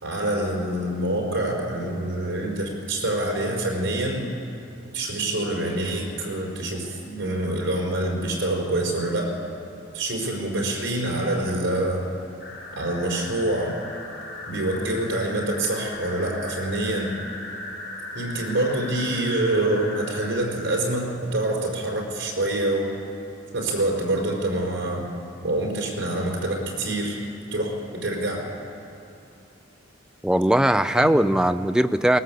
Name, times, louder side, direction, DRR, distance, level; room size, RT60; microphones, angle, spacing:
voice 1, 0.0-4.3 4.9-9.4 9.9-12.0 12.7-13.8 14.5-17.1 18.1-23.0 23.5-25.1 25.4-27.2 27.5-28.5 31.0-31.1, right 1 dB, 65° right, -1 dB, 4.6 m, -26 dB
sound 1, 12.4-20.3, left 2 dB, 45° left, 4.8 m, -37 dB
voice 2, 30.2-32.2, right 1 dB, 5° right, 10 dB, 0.4 m, -20 dB
19.5 x 19.0 x 7.6 m, 2.7 s
head